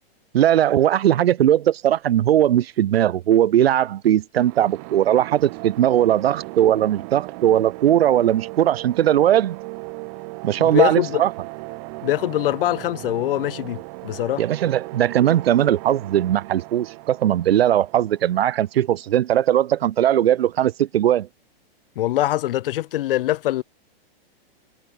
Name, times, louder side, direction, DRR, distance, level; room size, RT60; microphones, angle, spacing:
voice 1, 0.3-9.6 10.4-11.3 14.4-21.3, right 11 dB, 80° right, 1.5 m, -19 dB
sound 1, 4.3-19.0, right 32 dB, 35° right, 6.9 m, -37 dB
voice 2, 10.6-11.2 12.0-14.4 22.0-23.6, left 14 dB, 65° left, 0.6 m, -23 dB
supercardioid pair, 165°, 30 cm